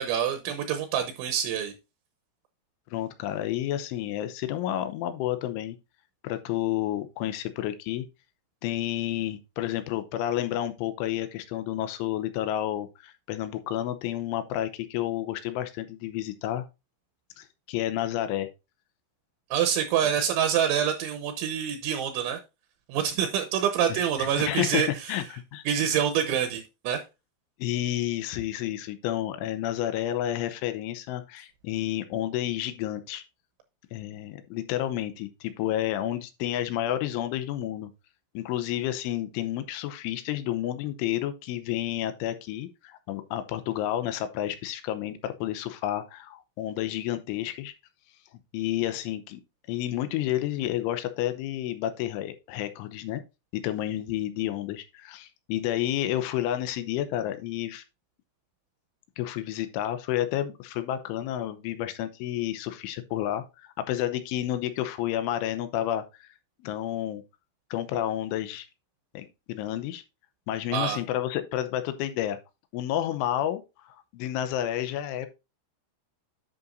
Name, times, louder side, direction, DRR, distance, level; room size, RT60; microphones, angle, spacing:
voice 1, 0.0-1.7 19.5-22.4 22.9-25.1 25.7-27.0 70.7-71.0, right 9 dB, 75° right, 3.2 m, -26 dB
voice 2, 2.9-5.8 6.2-8.1 8.6-16.6 17.4-18.5 23.9-25.6 27.6-33.2 33.9-37.9 38.3-47.7 48.5-49.4 49.7-53.2 53.5-57.8 59.2-66.3 66.6-67.2 67.7-68.7 69.1-70.0 70.5-72.4 72.7-75.3, left 12 dB, 80° left, 3.1 m, -30 dB
11.0 x 6.8 x 2.6 m
omnidirectional pair, 5.8 m